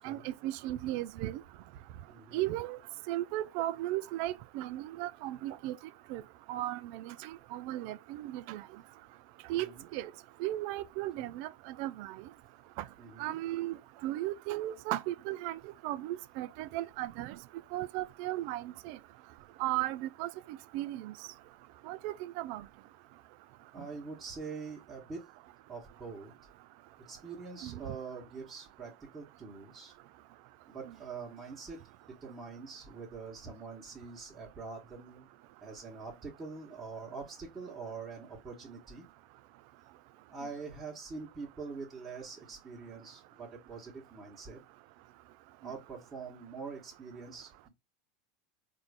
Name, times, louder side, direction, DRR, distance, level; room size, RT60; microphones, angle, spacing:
voice 1, 0.0-1.4 2.3-2.8 3.1-5.8 6.1-6.2 6.5-8.6 9.5-10.1 10.4-12.1 13.2-13.8 14.0-17.4 17.7-19.0 19.6-21.1 21.9-22.6 27.6-27.8, right 15 dB, 60° right, 0.4 m, -36 dB
voice 2, 2.1-2.5 9.5-9.8 11.2-11.3 13.0-13.4 23.7-25.3 25.7-26.3 27.1-29.9 30.7-35.3 35.6-39.0 40.3-44.6 45.6-47.7, right 4 dB, 20° right, 1.3 m, -44 dB
4.2 x 2.6 x 3.4 m
hypercardioid pair, 90°, 0 cm